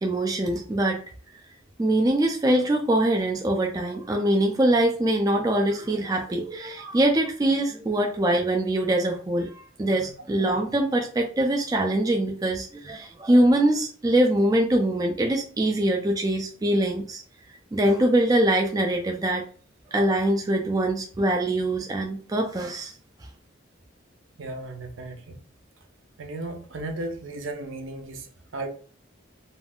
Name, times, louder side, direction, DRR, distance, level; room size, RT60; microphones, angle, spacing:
voice 1, 0.0-1.0 1.8-17.2 17.7-19.4 19.9-22.9, right 1 dB, 20° right, 2 dB, 0.3 m, -23 dB
voice 2, 24.4-25.4 26.2-28.7, right 2 dB, 80° right, 4 dB, 0.6 m, -35 dB
2.4 x 2.3 x 3.4 m, 0.41 s
head